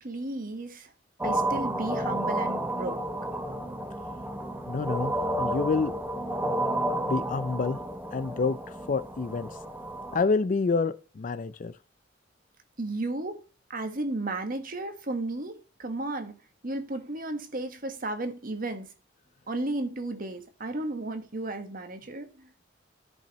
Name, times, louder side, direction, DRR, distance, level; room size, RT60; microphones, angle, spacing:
voice 1, 0.0-0.9 1.2-3.0 12.8-13.4 13.7-16.3 16.6-18.9 19.5-22.5, right 2 dB, 50° right, 1.4 m, -34 dB
sound 1, 1.2-10.3, right 1 dB, 10° right, 0.8 m, -31 dB
voice 2, 4.7-5.9 7.1-7.8 8.1-9.5 10.1-11.7, left 4 dB, 45° left, 0.4 m, -28 dB
13.5 x 5.6 x 3.0 m
head